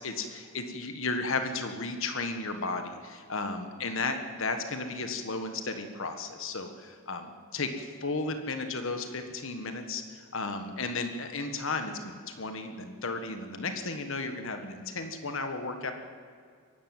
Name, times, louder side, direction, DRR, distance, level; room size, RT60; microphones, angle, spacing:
voice 1, 0.0-15.9, left 3 dB, 65° left, 7 dB, 1.5 m, -34 dB
23.0 x 12.5 x 9.2 m, 2.1 s
head